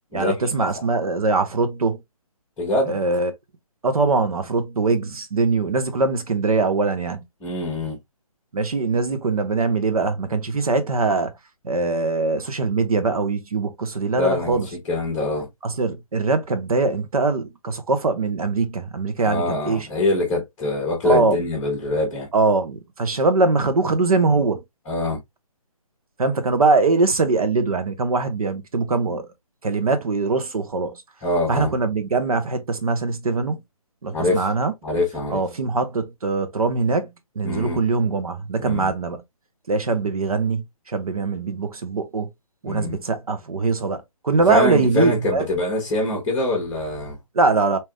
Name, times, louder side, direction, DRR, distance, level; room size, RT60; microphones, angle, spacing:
voice 1, 0.1-2.0 2.9-3.3 3.8-7.2 8.5-11.3 11.6-14.7 15.6-19.9 21.0-21.4 22.3-24.6 26.2-29.3 29.6-31.0 31.5-33.6 34.0-34.7 35.3-39.2 39.7-42.3 42.6-45.5 47.3-47.8, right 3 dB, 75° right, 1.1 m, -22 dB
voice 2, 2.6-3.0 7.4-8.0 14.1-14.6 14.9-15.5 19.2-22.3 24.9-25.2 31.2-31.7 34.1-34.5 34.8-35.4 37.4-37.8 38.6-38.9 42.6-43.0 44.5-47.2, left 2 dB, 10° left, 1.0 m, -24 dB
3.4 x 3.0 x 2.2 m
hypercardioid pair, 155°, 19 cm